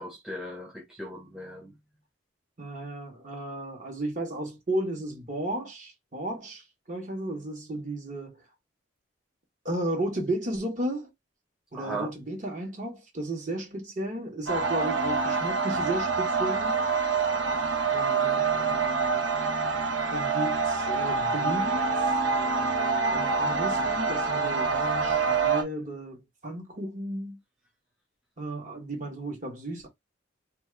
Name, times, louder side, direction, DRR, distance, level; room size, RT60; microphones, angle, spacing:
voice 1, 0.0-1.7 11.7-12.1, right 1 dB, 5° right, 0.5 m, -37 dB
voice 2, 2.6-8.4 9.6-11.1 11.7-16.8 17.9-19.2 20.1-22.1 23.1-27.4 28.4-29.9, right 1 dB, 40° right, 1.2 m, -34 dB
sound 1, 14.5-25.6, right 4 dB, 75° right, 0.8 m, -26 dB
2.6 x 2.4 x 3.3 m
head